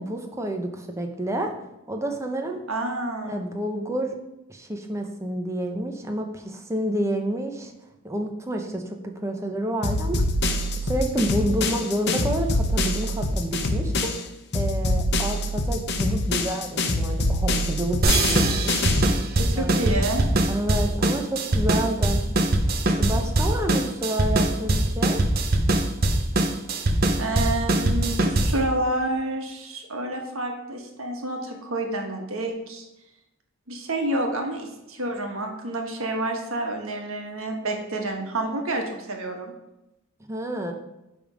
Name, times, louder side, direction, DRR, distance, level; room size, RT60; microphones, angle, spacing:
voice 1, 0.0-1.5 1.9-2.6 3.3-4.1 4.5-7.7 8.0-10.2 10.7-14.1 14.5-18.8 19.6-20.1 20.5-22.2 23.0-25.2 40.2-40.7, right 1 dB, 15° right, 3 dB, 0.8 m, -29 dB
voice 2, 2.7-3.4 19.4-20.2 27.2-32.8 33.7-39.5, right 1 dB, 70° right, 2 dB, 1.5 m, -29 dB
sound 1, 9.8-14.2 14.5-19.2, left 1 dB, 50° left, 0.8 m, -25 dB
sound 2, 18.0-28.7, right 2 dB, 45° right, 0.7 m, -22 dB
10.5 x 3.5 x 5.1 m, 0.93 s
head